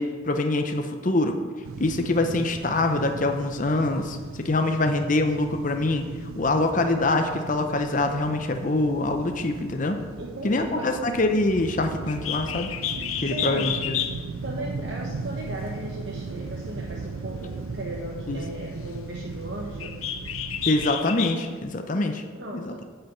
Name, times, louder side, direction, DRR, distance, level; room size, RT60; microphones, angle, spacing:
voice 1, 0.0-1.4 1.8-6.1 6.4-10.0 10.4-12.7 13.2-14.0 18.3-18.4 20.7-22.2 22.5-22.7, left 2 dB, 40° left, 5 dB, 0.7 m, -24 dB
sound 1, 1.6-20.9, right 4 dB, 85° right, 0.5 m, -37 dB
voice 2, 10.2-10.9 13.2-13.8 14.4-20.0 22.3-22.8, right 1 dB, 55° right, -2 dB, 1.1 m, -36 dB
Bird, 12.0-21.6, left 10 dB, 85° left, 0.7 m, -33 dB
9.1 x 5.7 x 8.2 m, 1.5 s
head